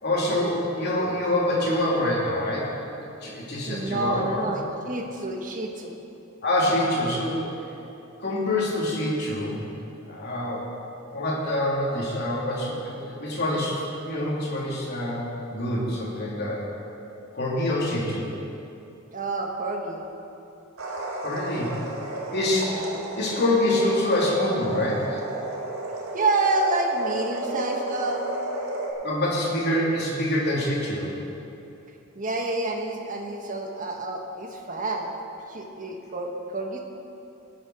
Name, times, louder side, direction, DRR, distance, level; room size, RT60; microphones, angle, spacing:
voice 1, 0.0-2.7 3.2-4.5 6.4-7.5 8.2-9.6 10.1-10.7 11.1-16.6 17.3-18.2 21.2-21.7 22.0-22.8 23.2-25.2 29.0-31.1, left 1 dB, 50° left, -5 dB, 3.0 m, -26 dB
voice 2, 3.7-5.9 19.1-20.1 22.6-23.0 26.1-28.2 32.1-35.1 35.5-36.8, right 2 dB, 40° right, 2 dB, 1.3 m, -28 dB
sound 1, 20.8-28.9, right 2 dB, 85° right, 1.9 m, -33 dB
18.5 x 7.6 x 4.9 m, 2.8 s
head